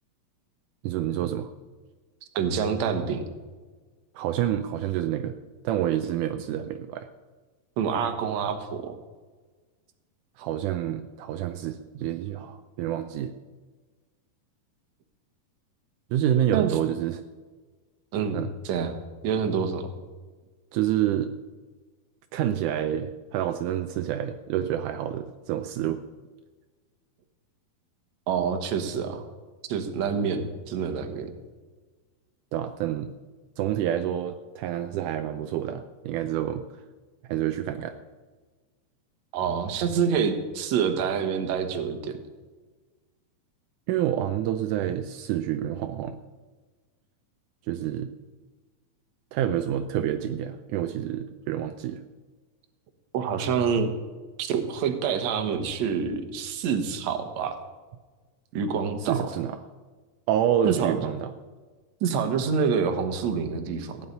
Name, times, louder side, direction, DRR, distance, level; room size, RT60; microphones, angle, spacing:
voice 1, 0.8-1.5 4.2-5.4 5.6-7.1 10.4-13.3 16.1-17.2 18.3-18.5 20.7-21.3 22.3-26.0 32.5-33.1 33.6-36.6 37.3-37.9 43.9-46.2 47.7-48.1 49.3-52.0 59.0-59.6 60.3-61.3, right 11 dB, 80° right, 8 dB, 1.8 m, -28 dB
voice 2, 2.3-3.2 7.8-9.0 16.5-16.7 18.1-18.4 18.6-19.0 19.2-19.9 28.3-29.3 29.7-31.3 39.3-42.2 53.1-53.9 54.4-57.6 58.5-59.3 60.6-61.0 62.0-64.0, right 6 dB, 60° right, 8 dB, 2.0 m, -27 dB
16.5 x 5.6 x 9.4 m, 1.4 s
omnidirectional pair, 4.2 m